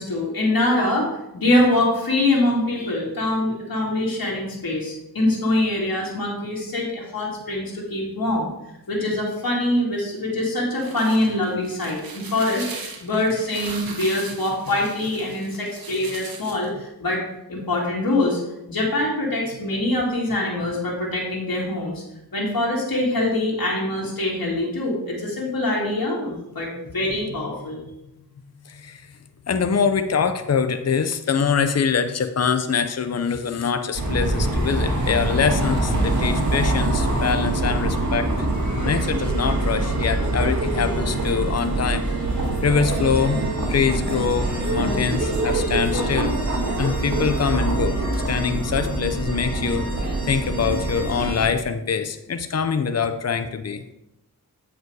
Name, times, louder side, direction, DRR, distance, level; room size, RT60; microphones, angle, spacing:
voice 1, 0.0-8.5 8.9-17.2 17.5-18.4 18.7-22.0 22.3-27.8, left 1 dB, 70° left, -4 dB, 2.4 m, -24 dB
sound 1, 10.5-16.7, right 4 dB, 70° right, 1.3 m, -39 dB
voice 2, 28.6-29.2 29.5-38.3 38.7-42.1 42.6-43.4 43.7-46.3 46.8-53.8, left 6 dB, 45° left, 9 dB, 0.7 m, -24 dB
sound 2, 33.9-51.5, right 2 dB, 50° right, 2.1 m, -24 dB
8.0 x 5.0 x 4.7 m, 0.85 s
cardioid pair, 50°, 37 cm